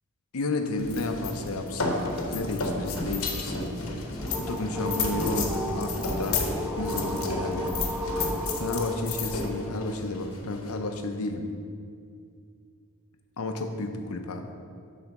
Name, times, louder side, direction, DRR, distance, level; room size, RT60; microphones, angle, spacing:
voice 1, 0.3-2.0 2.3-3.7 4.4-7.8 8.5-11.5 13.4-14.5, left 2 dB, 85° left, 5 dB, 0.7 m, -32 dB
sound 1, 0.8-10.8, left 3 dB, 70° left, 1.0 m, -31 dB
sound 2, 4.0-10.0, equal, 10° right, 0.3 m, -35 dB
7.7 x 4.2 x 6.0 m, 2.3 s
head